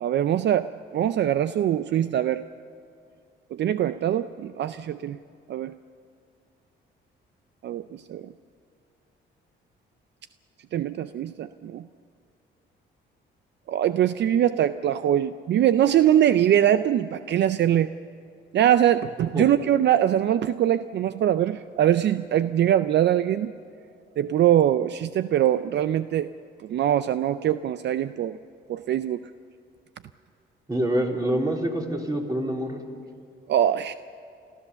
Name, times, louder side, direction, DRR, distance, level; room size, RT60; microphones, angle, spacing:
voice 1, 0.0-2.4 3.5-5.2 5.5-5.7 7.6-8.3 10.7-11.9 13.7-17.9 18.5-23.5 24.2-26.3 26.6-28.4 28.7-29.2 33.5-33.9, right 11 dB, 60° right, 12 dB, 0.5 m, -22 dB
voice 2, 30.7-32.8, right 1 dB, 20° right, 1 dB, 3.5 m, -26 dB
29.0 x 13.0 x 7.0 m, 2.4 s
cardioid pair, 90°, 20 cm